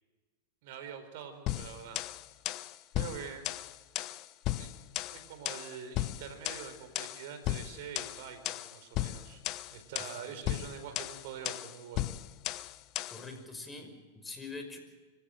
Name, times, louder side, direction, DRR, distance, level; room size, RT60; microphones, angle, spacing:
voice 1, 0.6-2.0 2.9-3.4 4.6-4.7 5.1-9.4 9.7-12.1, right 7 dB, 60° right, 8 dB, 4.4 m, -45 dB
sound 1, 1.5-13.3, left 15 dB, 45° left, 0.9 m, -36 dB
voice 2, 10.2-10.6 13.1-14.8, left 3 dB, 15° left, 5 dB, 5.6 m, -44 dB
25.0 x 16.0 x 9.0 m, 1.4 s
hypercardioid pair, 100°, 0 cm